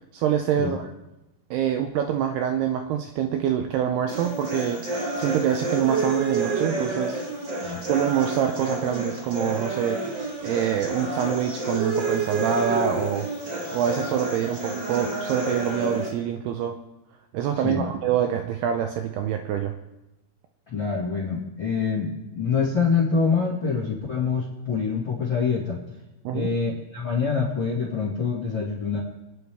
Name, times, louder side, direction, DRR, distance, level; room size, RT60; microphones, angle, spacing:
voice 1, 0.1-0.9 1.5-7.2 7.9-10.0 10.4-13.3 13.7-16.8 17.3-19.7 26.3-26.5, right 9 dB, 85° right, 5 dB, 2.4 m, -25 dB
sound 1, 4.1-16.1, right 2 dB, 40° right, 1.6 m, -29 dB
voice 2, 20.7-25.8 26.3-29.0, left 5 dB, 45° left, -4 dB, 1.6 m, -25 dB
27.0 x 9.5 x 3.5 m, 0.97 s
omnidirectional pair, 5.3 m